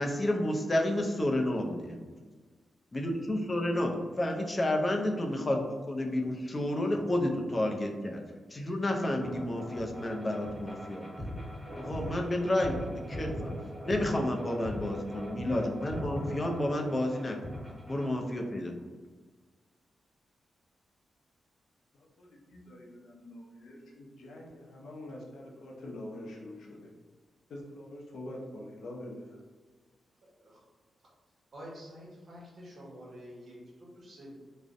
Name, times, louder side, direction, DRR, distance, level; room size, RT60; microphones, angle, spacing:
voice 1, 0.0-2.0 2.9-8.2 8.5-11.3 11.8-13.5 13.8-17.4 17.9-18.7, left 1 dB, 30° left, 2 dB, 0.4 m, -30 dB
sound 1, 9.2-18.1, equal, ahead, 0.9 m, -40 dB
voice 2, 21.9-26.9 27.5-29.4, left 1 dB, 85° left, -2 dB, 0.5 m, -45 dB
voice 3, 30.2-30.6 31.5-34.3, equal, 55° right, -4 dB, 0.8 m, -48 dB
2.5 x 2.0 x 2.5 m, 1.4 s
cardioid pair, 75°, 0 cm